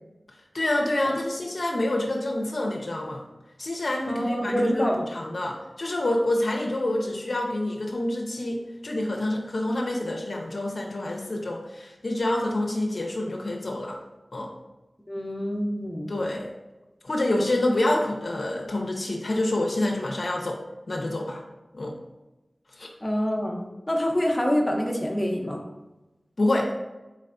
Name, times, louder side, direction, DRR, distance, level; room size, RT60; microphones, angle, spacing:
voice 1, 0.5-3.2 3.6-14.0 14.3-14.5 16.1-16.5 17.0-20.6 20.9-21.4 21.7-22.0 22.8-22.9 26.4-26.7, left 1 dB, 65° left, 0 dB, 0.5 m, -27 dB
voice 2, 4.1-5.0 15.1-16.1 23.0-25.6, equal, 20° left, -1 dB, 0.7 m, -26 dB
4.0 x 3.2 x 2.6 m, 1.1 s
wide cardioid pair, 50°, 0 cm